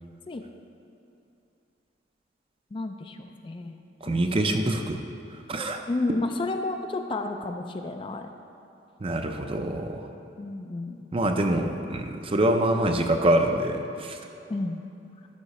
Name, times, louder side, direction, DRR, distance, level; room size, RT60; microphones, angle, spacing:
voice 1, 2.7-4.2 4.6-4.7 5.9-8.3 10.4-11.1 14.5-14.8, left 2 dB, 30° left, 6 dB, 0.3 m, -31 dB
voice 2, 4.0-5.0 5.5-5.8 9.0-10.1 11.1-14.2, right 1 dB, 30° right, 5 dB, 0.5 m, -25 dB
11.5 x 5.7 x 4.1 m, 2.8 s
head